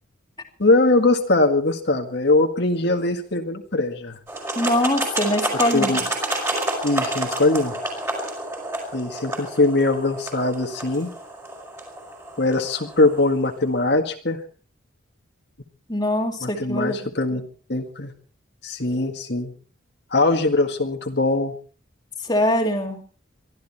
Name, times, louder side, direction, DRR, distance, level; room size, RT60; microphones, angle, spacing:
voice 1, 0.6-4.2 5.5-6.0 6.8-7.7 8.9-11.1 12.4-14.4 16.4-17.4 17.7-18.1 18.6-19.5 20.1-21.5, left 2 dB, 55° left, 3 dB, 1.9 m, -21 dB
sound 1, 4.3-13.3, right 1 dB, 15° right, 4.7 m, -29 dB
voice 2, 4.6-6.1 15.9-17.0 22.2-23.0, left 1 dB, 20° left, 2 dB, 2.4 m, -23 dB
23.5 x 13.5 x 4.4 m, 0.40 s
head